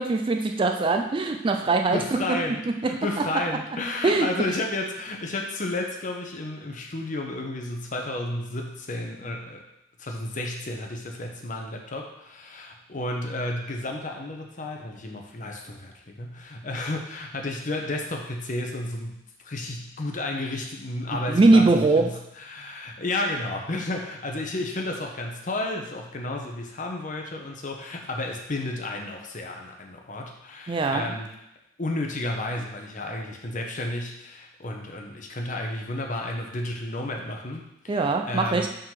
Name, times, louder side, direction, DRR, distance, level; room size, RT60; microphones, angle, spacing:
voice 1, 0.0-3.3 4.0-4.3 21.3-22.2 30.7-31.1 37.9-38.7, right 3 dB, 25° right, 4 dB, 0.3 m, -22 dB
voice 2, 1.9-9.6 10.0-19.2 19.4-31.3 31.8-38.7, left 2 dB, 40° left, 2 dB, 0.9 m, -32 dB
5.3 x 3.8 x 5.8 m, 0.83 s
head